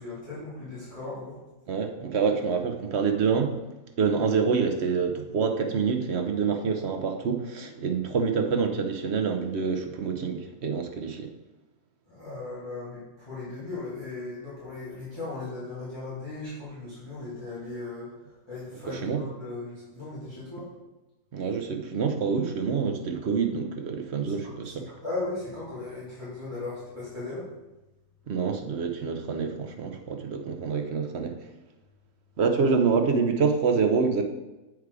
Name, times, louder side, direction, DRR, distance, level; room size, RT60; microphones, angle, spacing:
voice 1, 0.0-1.4 12.1-20.7 24.6-27.5, left 3 dB, 15° left, -12 dB, 3.0 m, -37 dB
voice 2, 1.7-3.6 4.0-11.3 18.9-19.2 21.3-24.7 28.3-31.4 32.4-34.3, right 5 dB, 55° right, 5 dB, 0.8 m, -26 dB
8.1 x 4.8 x 4.8 m, 1.1 s
omnidirectional pair, 1.7 m